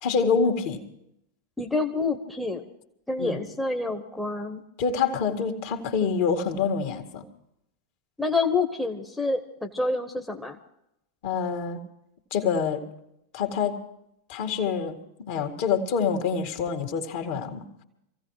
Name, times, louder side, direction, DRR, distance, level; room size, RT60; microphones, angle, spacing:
voice 1, 0.0-0.8 3.2-3.4 4.8-7.2 11.2-11.8 12.3-12.8 13.3-13.8 14.3-17.7, left 6 dB, 50° left, 4 dB, 2.1 m, -26 dB
voice 2, 1.6-2.6 3.1-4.6 8.2-10.6, left 3 dB, 5° left, 2 dB, 1.2 m, -27 dB
26.0 x 16.0 x 3.3 m, 0.82 s
figure-of-eight pair, 90°, 0 cm